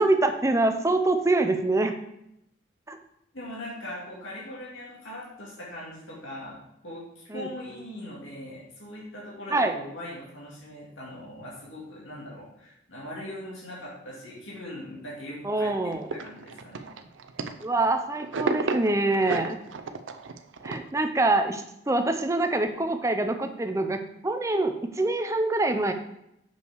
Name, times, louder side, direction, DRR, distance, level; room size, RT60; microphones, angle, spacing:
voice 1, 0.0-1.9 2.9-3.0 7.3-7.5 9.5-9.8 15.4-16.1 17.6-19.6 20.6-25.9, right 2 dB, 15° right, 6 dB, 0.5 m, -25 dB
voice 2, 3.3-6.6 6.8-15.8 16.1-16.9, left 1 dB, 75° left, -5 dB, 2.1 m, -40 dB
sound 1, 15.9-17.9 18.2-20.8, right 4 dB, 70° right, 0.5 m, -32 dB
6.4 x 5.5 x 4.7 m, 0.81 s
head